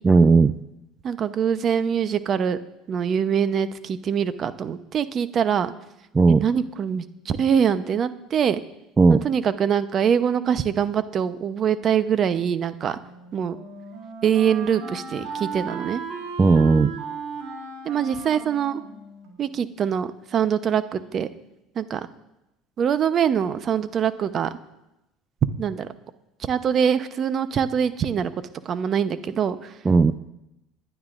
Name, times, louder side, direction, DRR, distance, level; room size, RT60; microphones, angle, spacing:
voice 1, 0.0-0.6 6.1-6.4 9.0-9.2 16.4-17.0 29.8-30.1, right 4 dB, 25° right, 11 dB, 0.4 m, -16 dB
voice 2, 1.0-2.6 2.9-5.7 6.3-8.6 9.1-13.0 13.3-13.6 14.2-16.0 17.8-18.8 19.4-21.3 21.8-22.1 22.8-24.5 25.6-25.9 26.5-28.3 28.6-29.7, right 8 dB, 45° right, 12 dB, 0.9 m, -23 dB
Wind instrument woodwind instrument, 13.0-19.8, right 5 dB, 70° right, 3.5 m, -36 dB
26.5 x 11.0 x 2.6 m, 0.91 s
hypercardioid pair, 85°, 0 cm